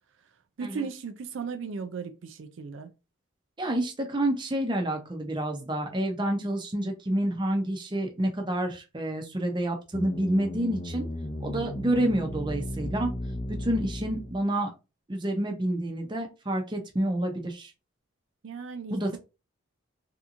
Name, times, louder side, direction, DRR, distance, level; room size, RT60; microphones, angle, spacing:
voice 1, 0.6-2.9 18.4-19.2, right 5 dB, 65° right, 0.4 m, -36 dB
voice 2, 3.6-11.1 11.4-13.1 13.5-14.7 15.1-17.7 18.9-19.2, right 1 dB, 20° right, 0.6 m, -28 dB
sound 1, 9.9-14.4, left 1 dB, 25° left, 0.5 m, -35 dB
3.5 x 2.9 x 2.5 m
head